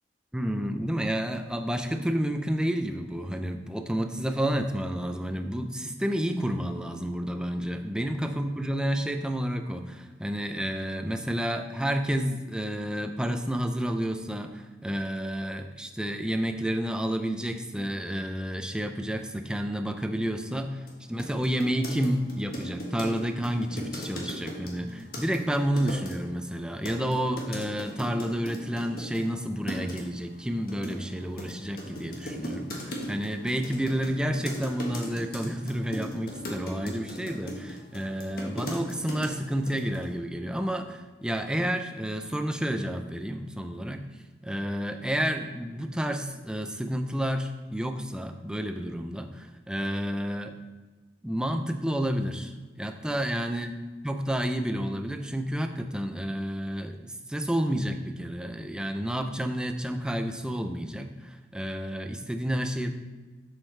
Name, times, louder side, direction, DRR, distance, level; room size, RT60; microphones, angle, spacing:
voice 1, 0.3-44.0 44.4-50.6 51.2-53.7 54.0-62.9, equal, 5° right, 6 dB, 0.4 m, -30 dB
sound 1, 20.9-21.0 21.2-26.1 26.8-29.3 29.7-30.0 30.7-39.4 39.7-40.1, equal, 50° left, 1.3 m, -38 dB
7.4 x 6.5 x 3.3 m, 1.3 s
head